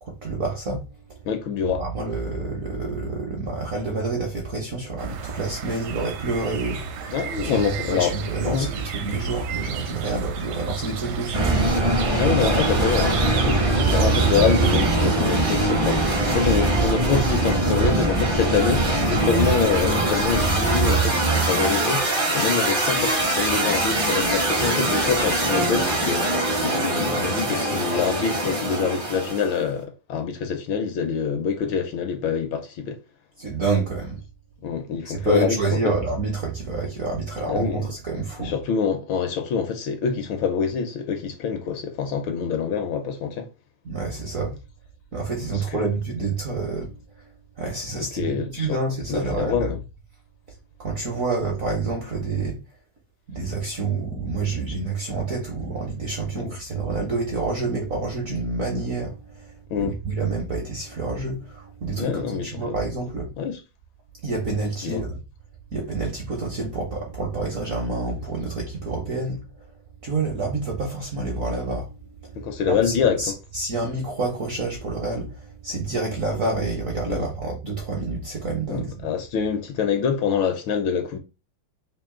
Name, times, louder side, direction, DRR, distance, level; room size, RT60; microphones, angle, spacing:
voice 1, 0.0-1.2 1.8-7.6 7.9-11.9 33.4-34.2 35.0-38.6 43.8-44.6 45.1-47.3 47.6-49.7 50.8-52.6 53.3-63.3 64.2-65.2 65.7-69.7 70.0-79.1, right 3 dB, 60° right, 0.9 m, -28 dB
voice 2, 1.2-1.8 7.1-8.2 8.4-8.7 12.1-33.0 34.6-35.6 37.5-37.9 38.4-43.5 45.7-45.9 48.2-48.8 49.1-49.8 56.3-56.6 59.7-59.9 62.0-62.7 63.4-63.6 64.8-65.0 72.4-73.3 77.1-77.3 78.7-81.2, left 6 dB, 75° left, 1.3 m, -25 dB
sound 1, 5.0-16.8, right 7 dB, 80° right, 1.4 m, -33 dB
sound 2, 11.3-29.6, right 2 dB, 35° right, 0.5 m, -22 dB
3.7 x 2.6 x 3.6 m
omnidirectional pair, 2.4 m